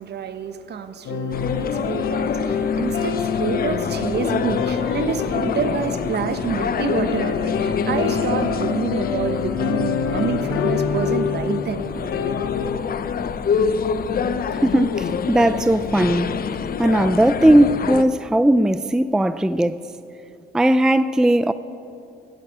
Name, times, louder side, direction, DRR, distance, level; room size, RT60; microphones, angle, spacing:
voice 1, 0.0-11.9, right 7 dB, 55° right, 1.0 m, -28 dB
sound 1, 1.0-12.8, left 6 dB, 80° left, 1.2 m, -26 dB
sound 2, 1.3-18.0, left 6 dB, 50° left, 0.7 m, -27 dB
voice 2, 14.6-16.4 16.8-19.9 20.5-21.5, right 1 dB, 5° right, 0.4 m, -18 dB
15.0 x 9.2 x 8.7 m
cardioid pair, 90°, 20 cm